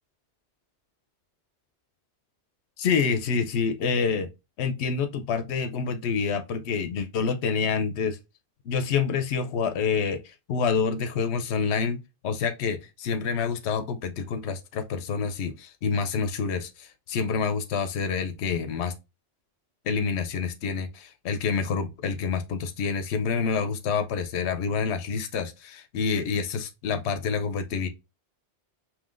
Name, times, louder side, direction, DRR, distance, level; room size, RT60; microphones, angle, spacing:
voice 1, 2.8-4.3 4.6-8.2 8.6-18.9 19.8-27.9, left 5 dB, 75° left, 0.9 m, -27 dB
5.5 x 2.8 x 2.5 m
omnidirectional pair, 1.2 m